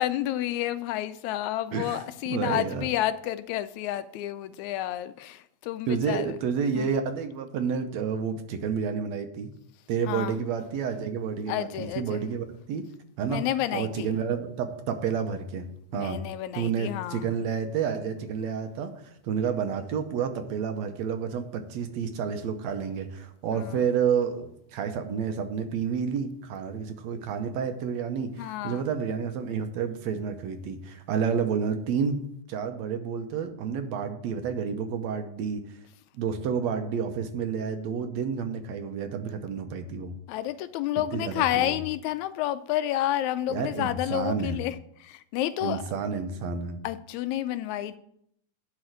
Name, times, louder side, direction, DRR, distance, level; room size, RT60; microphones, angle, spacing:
voice 1, 0.0-6.4 6.8-6.9 10.1-10.4 11.5-12.2 13.2-14.1 15.9-17.3 23.5-23.7 28.4-28.8 40.3-44.8 45.0-45.8 46.8-48.0, left 13 dB, 80° left, 1.8 m, -30 dB
voice 2, 1.7-2.9 5.9-9.5 9.9-12.9 13.2-13.5 13.7-16.2 16.5-32.2 32.5-35.8 36.1-40.2 41.1-41.8 43.5-44.6 45.6-46.8, right 6 dB, 75° right, 2.0 m, -30 dB
11.5 x 4.3 x 7.8 m
omnidirectional pair, 3.4 m